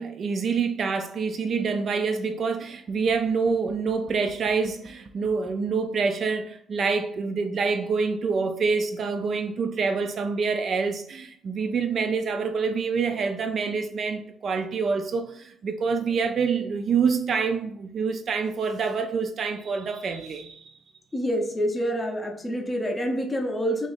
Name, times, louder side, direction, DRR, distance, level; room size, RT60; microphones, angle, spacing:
voice 1, 0.0-20.7, right 5 dB, 45° right, 0.3 m, -26 dB
voice 2, 21.1-23.9, equal, 15° left, 0.5 m, -27 dB
2.9 x 2.4 x 4.0 m
cardioid pair, 140°, 0 cm